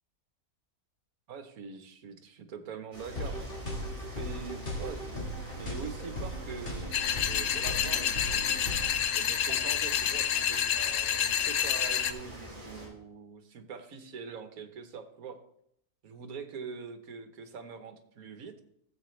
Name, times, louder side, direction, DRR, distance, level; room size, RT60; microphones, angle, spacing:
voice 1, 1.3-3.4 4.1-8.7 9.1-15.4 16.0-18.5, right 5 dB, 70° right, 8 dB, 1.5 m, -44 dB
sound 1, 2.9-12.9, right 1 dB, 30° right, 4.3 m, -45 dB
sound 2, 3.1-9.0, equal, 40° left, 1.8 m, -38 dB
sound 3, 6.9-12.1, left 9 dB, 65° left, 0.9 m, -29 dB
14.0 x 7.8 x 3.2 m, 0.72 s
omnidirectional pair, 1.6 m